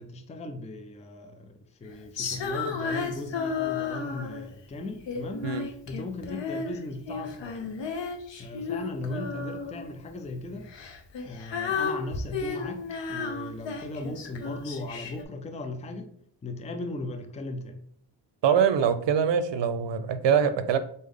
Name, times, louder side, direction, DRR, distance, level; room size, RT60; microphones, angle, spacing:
voice 1, 0.0-7.7 8.4-10.7 11.2-16.1 16.4-17.8, left 2 dB, 15° left, 0.4 m, -38 dB
Female singing, 2.2-4.5 5.1-6.8 7.1-9.9 10.7-15.2, left 5 dB, 90° left, 0.7 m, -33 dB
voice 2, 18.4-20.8, right 7 dB, 80° right, 0.6 m, -23 dB
4.0 x 3.5 x 3.7 m
wide cardioid pair, 110°, 43 cm